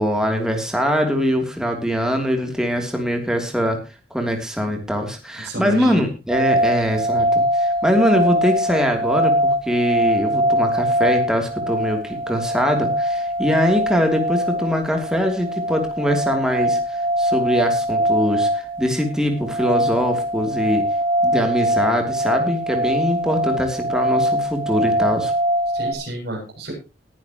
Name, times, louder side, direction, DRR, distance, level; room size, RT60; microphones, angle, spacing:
voice 1, 0.0-3.8 4.1-20.9 21.2-25.3, equal, 5° right, 3 dB, 3.0 m, -22 dB
voice 2, 5.4-6.0 25.7-26.7, equal, 60° right, -3 dB, 7.5 m, -30 dB
sound 1, 6.3-25.9, equal, 30° right, 3.2 m, -22 dB
20.5 x 10.5 x 3.0 m, 0.30 s
head